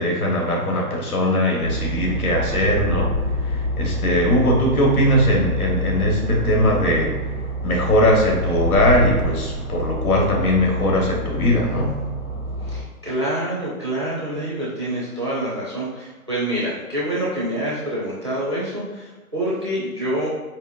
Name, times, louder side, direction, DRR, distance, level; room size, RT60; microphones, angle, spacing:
voice 1, 0.0-3.1 3.4-7.2 7.6-12.0, equal, 75° left, -1 dB, 1.4 m, -20 dB
sound 1, 1.6-12.8, equal, 20° left, 1.1 m, -27 dB
voice 2, 12.6-20.3, right 1 dB, 20° right, -8 dB, 0.5 m, -26 dB
4.5 x 3.1 x 2.5 m, 1.3 s
hypercardioid pair, 170°, 44 cm